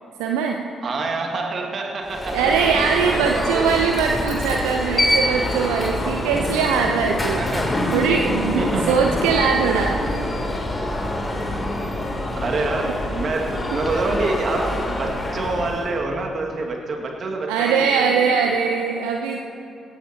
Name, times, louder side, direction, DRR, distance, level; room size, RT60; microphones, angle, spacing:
voice 1, 0.2-0.6 2.3-7.4 7.9-10.0 17.5-19.4, right 6 dB, 75° right, 2 dB, 0.7 m, -21 dB
voice 2, 0.8-2.4 3.1-3.8 7.4-7.8 8.6-9.0 12.4-18.5, right 3 dB, 50° right, 2 dB, 2.0 m, -27 dB
Alarm, 2.0-16.0, left 1 dB, 30° left, 3.1 m, -25 dB
20.0 x 17.5 x 2.9 m, 2.9 s
figure-of-eight pair, 40°, 0 cm